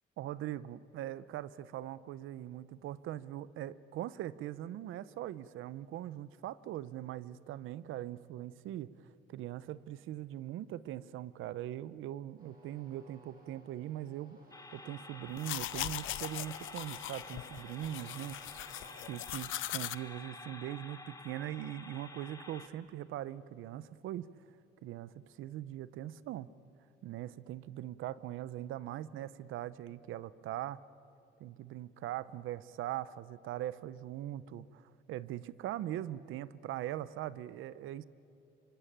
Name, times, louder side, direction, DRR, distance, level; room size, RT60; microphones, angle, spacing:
voice 1, 0.2-8.9 9.3-14.4 14.7-18.4 19.1-24.3 24.8-26.5 27.0-30.8 31.4-38.0, right 13 dB, 85° right, 17 dB, 0.8 m, -41 dB
sound 1, 12.4-19.1, right 2 dB, 45° right, 7.1 m, -60 dB
sound 2, 14.5-22.7, left 3 dB, 15° left, 2.7 m, -50 dB
sound 3, 15.3-19.9, left 16 dB, 85° left, 0.6 m, -40 dB
25.5 x 25.0 x 8.8 m, 2.8 s
cardioid pair, 90°, 20 cm